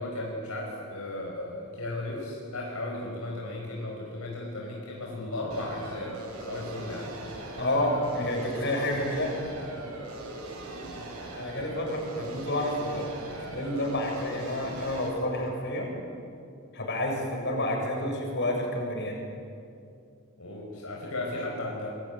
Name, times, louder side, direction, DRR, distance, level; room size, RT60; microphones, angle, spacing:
voice 1, 0.0-7.1 20.4-21.9, left 2 dB, 75° left, -1 dB, 5.1 m, -35 dB
sound 1, 5.5-15.1, right 2 dB, 90° right, 7.7 m, -40 dB
voice 2, 7.6-9.3 11.4-15.9 16.7-19.3, left 1 dB, 50° left, 1 dB, 7.1 m, -29 dB
27.0 x 23.5 x 9.4 m, 2.5 s
head